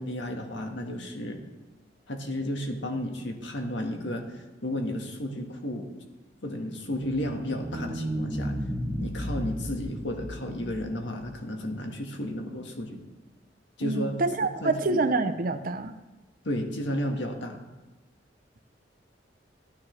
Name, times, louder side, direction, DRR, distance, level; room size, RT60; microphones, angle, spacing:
voice 1, 0.0-1.4 2.1-5.9 6.4-8.5 9.0-13.0 13.8-14.1 14.6-15.0 16.4-17.6, left 1 dB, 75° left, 3 dB, 1.6 m, -33 dB
sound 1, 6.8-11.3, equal, 10° left, 2.2 m, -34 dB
voice 2, 13.8-15.9, right 3 dB, 50° right, 9 dB, 0.7 m, -27 dB
14.5 x 9.9 x 3.3 m, 1.1 s
head